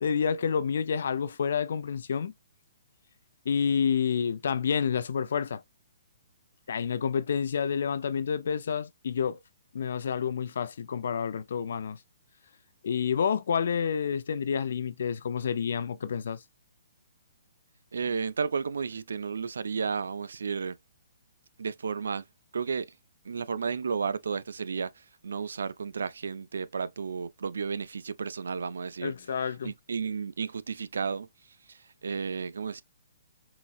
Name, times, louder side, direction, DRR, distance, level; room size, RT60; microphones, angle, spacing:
voice 1, 0.0-2.3 3.5-5.6 6.7-9.4 9.7-12.0 12.8-16.4 29.0-29.7, left 7 dB, 55° left, 0.4 m, -29 dB
voice 2, 17.9-20.8 21.6-22.2 22.5-22.9 23.2-29.1 29.6-31.3 31.7-32.8, right 5 dB, 90° right, 0.3 m, -33 dB
3.9 x 2.1 x 2.3 m
hypercardioid pair, 175°, 0 cm